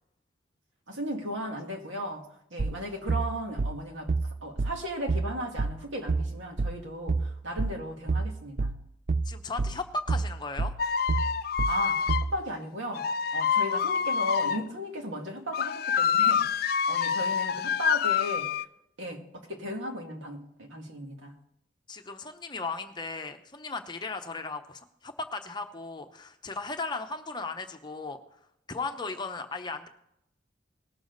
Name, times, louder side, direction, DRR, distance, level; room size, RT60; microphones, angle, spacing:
voice 1, 0.9-4.1 4.4-8.7 11.7-18.6 19.0-21.3, equal, 90° right, 2.1 m, -36 dB
sound 1, 2.6-12.4, right 3 dB, 45° right, 0.4 m, -29 dB
voice 2, 9.2-10.7 21.9-28.2 28.7-29.9, left 3 dB, 25° left, 0.8 m, -36 dB
sound 2, 10.8-12.3 12.9-14.6 15.5-18.6, left 7 dB, 55° left, 0.3 m, -27 dB
19.0 x 6.9 x 4.0 m
head